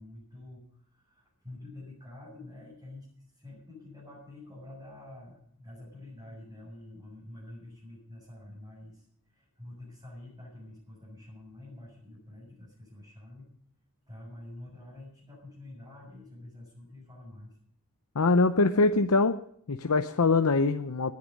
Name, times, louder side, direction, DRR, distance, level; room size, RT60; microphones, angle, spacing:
voice 1, 0.0-3.1 3.3-13.5 14.1-17.5, left 1 dB, 20° right, -6 dB, 7.6 m, -48 dB
voice 2, 18.1-19.4 19.7-21.1, left 3 dB, 80° left, 8 dB, 0.8 m, -23 dB
19.5 x 10.5 x 5.4 m, 0.67 s
head